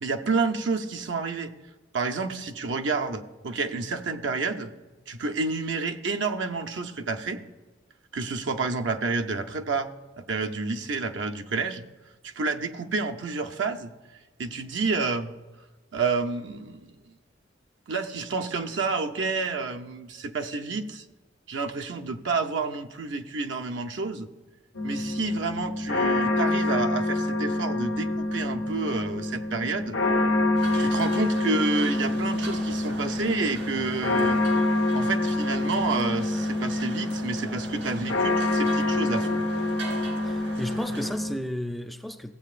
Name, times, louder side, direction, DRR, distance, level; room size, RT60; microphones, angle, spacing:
voice 1, 0.0-1.5 1.9-4.7 5.1-7.4 8.1-9.9 10.2-11.8 12.2-13.9 14.4-15.3 15.9-16.9 17.9-21.0 21.5-24.3 24.8-30.0 30.8-34.4 34.9-39.4, right 4 dB, 70° right, 0.7 m, -29 dB
sound 1, 24.8-41.4, left 2 dB, 80° left, 1.1 m, -26 dB
sound 2, 30.5-41.1, right 2 dB, 90° right, 2.5 m, -40 dB
voice 2, 40.2-42.3, equal, ahead, 0.3 m, -33 dB
15.0 x 8.2 x 2.5 m
head